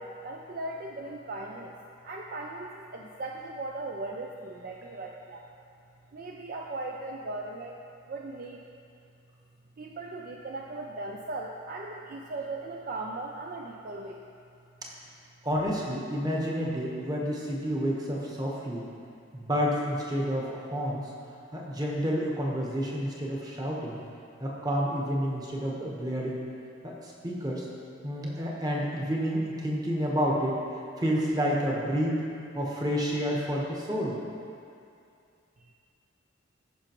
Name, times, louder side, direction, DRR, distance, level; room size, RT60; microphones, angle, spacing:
voice 1, 0.0-1.7 2.0-5.5 6.1-7.8 8.1-8.6 9.8-14.2 35.6-35.7, right 2 dB, 45° right, 0 dB, 0.4 m, -38 dB
voice 2, 15.4-18.9 19.3-21.1 21.5-24.0 24.4-26.5 26.8-27.7 28.0-30.6 31.0-32.2 32.5-34.2, equal, 20° right, -3 dB, 1.0 m, -29 dB
14.5 x 5.7 x 3.0 m, 2.5 s
head